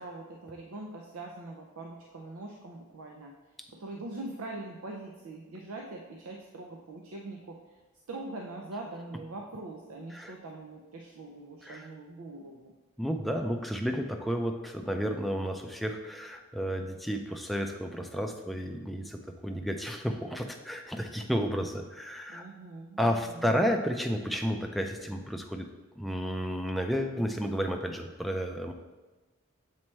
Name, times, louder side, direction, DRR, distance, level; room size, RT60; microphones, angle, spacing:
voice 1, 0.0-3.3 3.7-7.8 8.1-12.7 22.3-23.5, right 2 dB, 85° right, 1 dB, 0.5 m, -42 dB
voice 2, 13.0-22.5 23.0-25.7 26.0-28.7, equal, ahead, 3 dB, 0.4 m, -32 dB
7.3 x 4.3 x 3.2 m, 1.2 s
head